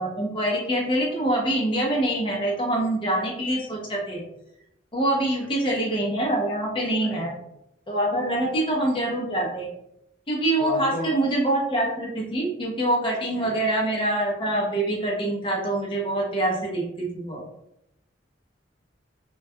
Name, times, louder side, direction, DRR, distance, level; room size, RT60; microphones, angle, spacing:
voice 1, 0.0-4.2 4.9-7.3 7.9-9.7 10.3-17.4, right 1 dB, 30° left, -2 dB, 0.5 m, -25 dB
voice 2, 10.6-11.1 13.3-13.5, equal, 80° left, 0 dB, 0.5 m, -34 dB
2.2 x 2.2 x 2.6 m, 0.81 s
head